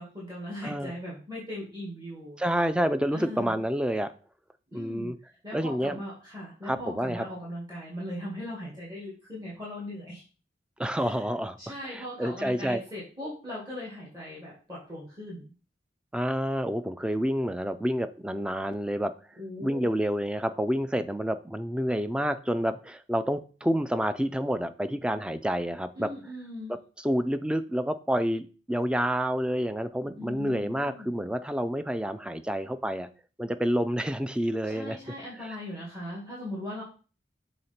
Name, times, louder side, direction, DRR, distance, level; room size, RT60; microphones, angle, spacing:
voice 1, 0.0-2.6 3.1-3.6 4.7-10.2 10.9-11.2 11.6-15.4 19.4-19.9 26.0-26.7 30.2-31.1 34.6-36.8, left 1 dB, 20° right, -6 dB, 2.1 m, -39 dB
voice 2, 2.4-4.1 4.7-5.1 5.5-6.0 6.6-7.2 10.8-11.6 11.9-12.8 16.1-19.1 19.6-26.1 27.0-33.1 33.4-35.0, equal, 5° right, 11 dB, 0.4 m, -28 dB
6.6 x 3.9 x 4.3 m, 0.37 s
head